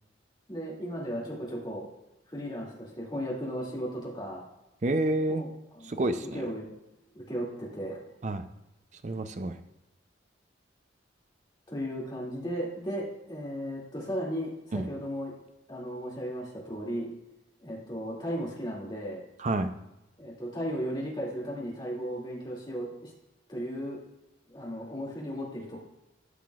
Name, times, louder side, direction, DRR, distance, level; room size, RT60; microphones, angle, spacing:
voice 1, 0.5-1.8 2.3-4.4 5.3-5.5 5.8-6.7 7.1-8.0 11.7-15.3 15.7-17.1 17.6-19.2 20.2-23.1 23.5-24.0 24.5-25.8, equal, 25° left, -4 dB, 2.4 m, -35 dB
voice 2, 4.8-5.4 5.8-6.4 8.2-8.4 9.0-9.6 14.7-14.9 19.4-19.7, right 2 dB, 40° right, 9 dB, 0.5 m, -29 dB
13.5 x 5.9 x 2.4 m, 0.93 s
head